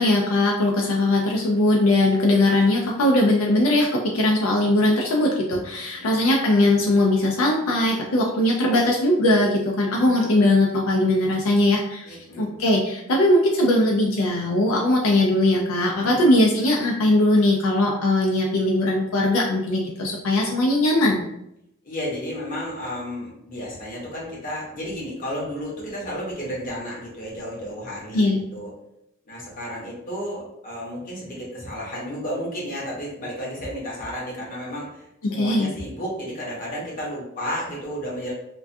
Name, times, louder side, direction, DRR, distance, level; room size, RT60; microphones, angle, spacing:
voice 1, 0.0-21.2 28.1-28.4 35.2-35.7, left 1 dB, 85° left, -1 dB, 0.4 m, -20 dB
voice 2, 8.0-8.3 10.0-10.3 12.0-12.6 16.0-16.2 21.8-28.3 28.5-28.7 29.3-35.0 35.3-38.3, equal, 40° left, -4 dB, 0.8 m, -32 dB
2.3 x 2.2 x 2.5 m, 0.79 s
head